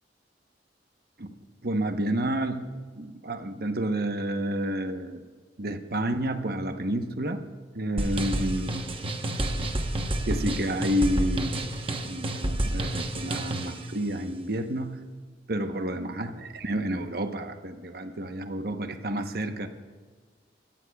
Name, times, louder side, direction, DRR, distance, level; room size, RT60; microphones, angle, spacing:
voice 1, 1.6-5.2 5.6-7.4 7.7-8.9 10.3-11.6 12.0-14.9 15.5-19.7, right 1 dB, 60° right, 7 dB, 0.9 m, -30 dB
sound 1, 8.0-13.8, right 1 dB, 30° right, 1.0 m, -29 dB
23.0 x 14.5 x 2.3 m, 1.5 s
head